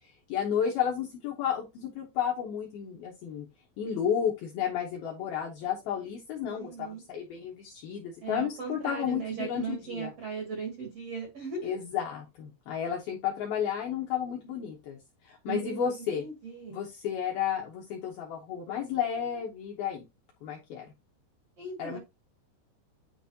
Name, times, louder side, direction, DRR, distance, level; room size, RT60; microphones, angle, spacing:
voice 1, 0.3-3.5 3.8-10.1 11.6-15.0 15.2-16.2 16.7-20.0 20.4-20.9 21.8-22.0, left 8 dB, 75° left, 0 dB, 2.3 m, -32 dB
voice 2, 6.5-7.0 8.2-11.8 15.5-16.8 21.6-22.0, right 5 dB, 50° right, 0 dB, 2.0 m, -38 dB
9.4 x 4.0 x 2.8 m, 0.22 s
omnidirectional pair, 5.6 m